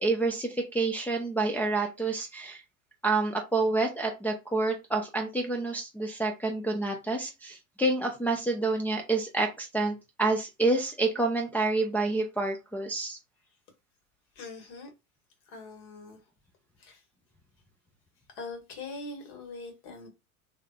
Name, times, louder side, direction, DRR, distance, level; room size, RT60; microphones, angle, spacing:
voice 1, 0.0-2.6 3.0-13.2, right 3 dB, 5° left, 0.4 m, -28 dB
voice 2, 14.3-14.9 15.5-16.2 16.8-17.0 18.3-20.1, left 3 dB, 50° left, 1.6 m, -42 dB
3.3 x 3.2 x 2.3 m
figure-of-eight pair, 80°, 44 cm